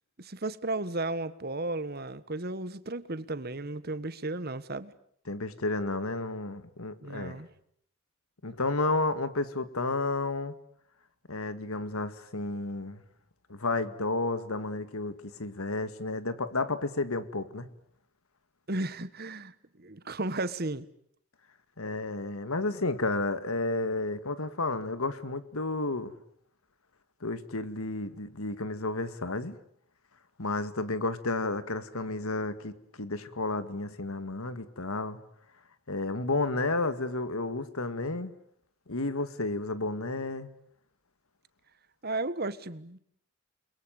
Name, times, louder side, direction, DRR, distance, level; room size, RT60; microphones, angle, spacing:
voice 1, 0.2-4.9 7.0-7.5 18.7-20.9 42.0-43.0, right 2 dB, 45° right, 1.4 m, -34 dB
voice 2, 5.3-7.4 8.4-10.5 11.3-13.0 13.5-17.7 21.8-26.2 27.2-29.6 30.4-35.2 35.9-38.4 38.9-40.5, left 2 dB, 80° left, 2.0 m, -32 dB
29.5 x 22.5 x 9.0 m
head